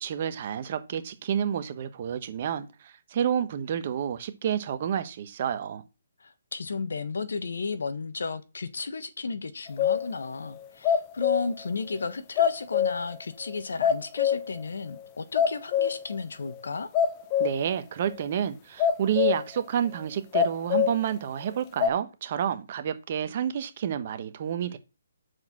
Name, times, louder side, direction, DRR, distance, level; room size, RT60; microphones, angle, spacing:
voice 1, 0.0-5.8 17.4-24.8, right 9 dB, 40° right, 1.1 m, -29 dB
voice 2, 6.2-16.9, left 4 dB, 75° left, 1.2 m, -34 dB
sound 1, 9.8-10.1 10.6-11.6 12.0-12.1 12.4-13.2 13.5-13.6 13.8-14.6 15.0-15.1 15.3-16.2 16.5-16.6 16.9-17.7 18.1-18.2 18.8-19.5 20.3-21.0 21.8-21.9, left 8 dB, 25° left, 0.7 m, -24 dB
6.3 x 4.8 x 6.0 m
hypercardioid pair, 160°, 0 cm